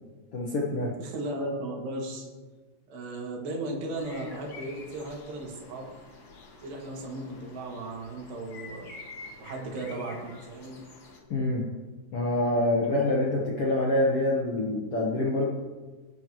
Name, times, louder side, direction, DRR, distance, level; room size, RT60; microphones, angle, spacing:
voice 1, 0.3-0.9 11.3-11.6 12.1-15.5, left 1 dB, 85° left, -2 dB, 1.2 m, -26 dB
voice 2, 1.0-2.3 2.9-5.9 6.6-8.9 9.4-10.8, right 2 dB, 75° right, -1 dB, 4.2 m, -36 dB
sound 1, 4.0-11.2, left 3 dB, 45° left, 1.7 m, -48 dB
21.0 x 11.5 x 3.1 m, 1.4 s
omnidirectional pair, 4.8 m